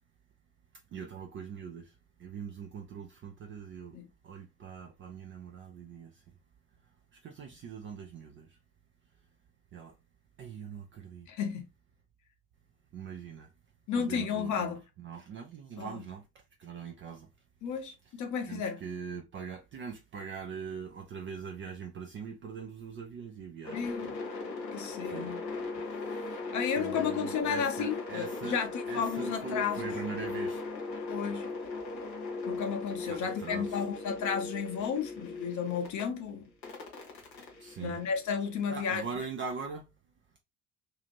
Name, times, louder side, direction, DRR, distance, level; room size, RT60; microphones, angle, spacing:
voice 1, 0.9-1.9 2.2-4.0 4.2-6.1 7.2-8.5 9.7-9.9 10.4-11.3 12.9-13.5 13.9-16.2 16.6-17.3 18.5-24.2 25.1-25.3 26.0-26.3 26.8-28.6 28.9-30.6 33.1-33.8 37.6-38.0 38.7-39.9, right 6 dB, 25° right, 0.4 m, -42 dB
voice 2, 11.3-11.7 13.9-14.8 15.8-16.0 17.6-18.8 23.7-24.1 24.7-25.4 26.5-29.9 31.1-31.5 32.5-36.4 37.8-39.0, left 7 dB, 35° left, 0.7 m, -33 dB
sound 1, 23.6-36.0 36.6-38.7, left 3 dB, 80° left, 0.8 m, -38 dB
2.7 x 2.4 x 2.9 m
figure-of-eight pair, 50°, 50 cm